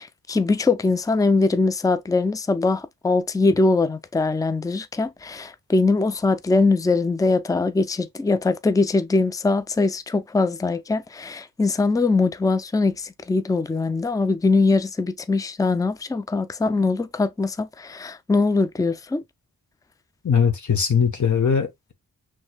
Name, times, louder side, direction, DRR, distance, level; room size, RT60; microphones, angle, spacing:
voice 1, 0.0-19.2, left 3 dB, 10° left, 0.4 m, -22 dB
voice 2, 20.2-21.9, left 6 dB, 55° left, 1.1 m, -20 dB
6.2 x 3.2 x 2.2 m
wide cardioid pair, 90°, 35 cm